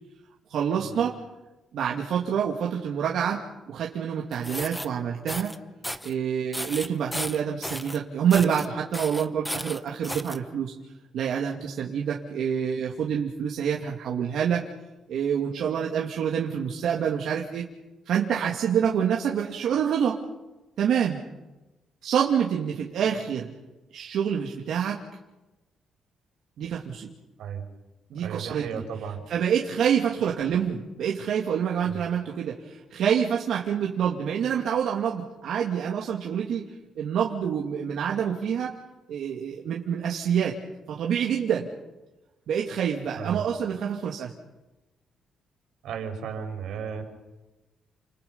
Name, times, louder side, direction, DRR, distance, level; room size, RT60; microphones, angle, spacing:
voice 1, 0.5-1.2 1.7-5.5 6.0-10.7 11.1-14.6 15.1-17.7 18.1-20.2 20.8-21.2 22.0-23.5 23.9-25.0 26.6-27.1 28.1-28.8 29.3-36.6 37.0-38.8 39.1-40.6 40.9-41.7 42.5-44.3, right 8 dB, 65° right, -2 dB, 2.7 m, -27 dB
sound 1, 4.3-4.9 5.3-5.6 5.8-6.1 6.5-8.0 8.3-8.7 8.9-10.4, equal, 5° left, 0.9 m, -34 dB
voice 2, 28.2-29.2 31.8-32.0 43.2-43.4 45.8-47.0, right 7 dB, 85° right, 4 dB, 5.4 m, -34 dB
30.0 x 28.5 x 5.7 m, 1.1 s
cardioid pair, 165°, 0 cm